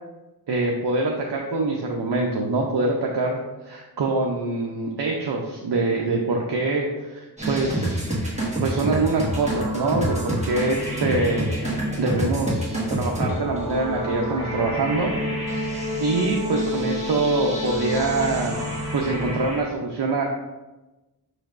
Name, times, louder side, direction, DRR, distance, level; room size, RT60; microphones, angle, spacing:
voice 1, 0.5-3.4 3.7-8.0 8.6-11.7 12.0-15.1 16.0-18.5 18.9-20.2, right 3 dB, 85° right, 0 dB, 0.6 m, -24 dB
sound 1, 7.4-19.6, equal, 15° right, 1.3 m, -27 dB
6.2 x 3.2 x 2.4 m, 1.1 s
wide cardioid pair, 50°, 39 cm